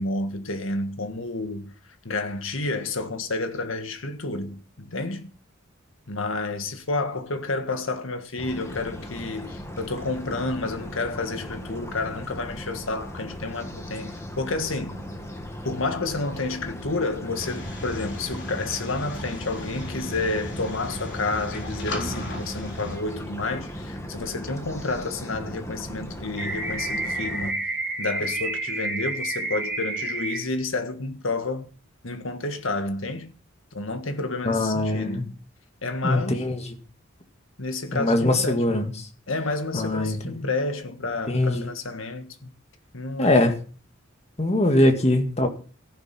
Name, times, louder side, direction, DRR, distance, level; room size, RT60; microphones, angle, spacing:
voice 1, 0.0-1.7 2.0-5.3 6.1-15.0 15.6-27.7 28.0-31.7 32.0-33.3 33.7-35.4 35.8-36.4 37.6-38.7 39.3-42.5 42.9-43.5, left 3 dB, 90° left, 1.7 m, -30 dB
sound 1, 8.4-27.5, left 1 dB, 15° left, 2.0 m, -37 dB
sound 2, 17.4-23.0, left 1 dB, 60° left, 3.9 m, -36 dB
sound 3, 26.4-30.4, right 2 dB, 5° right, 5.1 m, -29 dB
voice 2, 34.5-35.2 36.0-36.6 37.9-38.9 39.7-40.2 41.3-41.7 43.2-43.6 44.4-45.5, left 1 dB, 35° left, 2.0 m, -22 dB
15.0 x 11.0 x 4.4 m
head